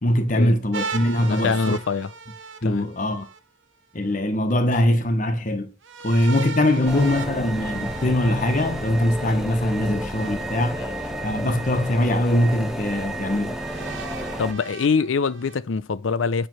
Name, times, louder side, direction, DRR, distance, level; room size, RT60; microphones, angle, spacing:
voice 1, 0.0-1.5 2.6-3.3 3.9-5.7 6.0-10.8 11.2-13.6, left 1 dB, 40° left, 1.0 m, -22 dB
sound 1, 0.7-3.4 5.8-8.9 10.1-11.1 11.8-11.9 13.6-15.6, right 4 dB, 80° right, 0.9 m, -37 dB
voice 2, 1.2-2.1 2.6-2.9 10.7-10.9 14.4-16.5, left 5 dB, 90° left, 0.5 m, -24 dB
sound 2, 6.9-14.5, equal, ahead, 1.0 m, -31 dB
9.0 x 3.2 x 6.0 m
head